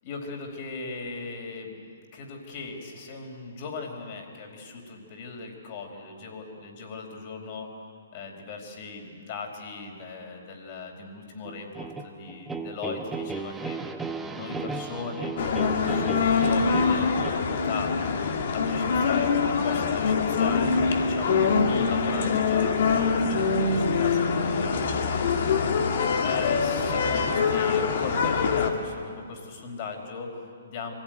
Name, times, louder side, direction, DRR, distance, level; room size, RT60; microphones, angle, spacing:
voice 1, 0.0-1.8 2.1-7.7 8.1-13.8 14.3-18.0 18.5-19.4 19.6-30.9, left 4 dB, 45° left, 3 dB, 4.6 m, -38 dB
sound 1, 11.5-17.3, right 4 dB, 10° right, 1.0 m, -35 dB
sound 2, 15.4-28.7, left 5 dB, 60° left, 2.2 m, -24 dB
25.0 x 16.0 x 9.3 m, 2.3 s
hypercardioid pair, 135°, 0 cm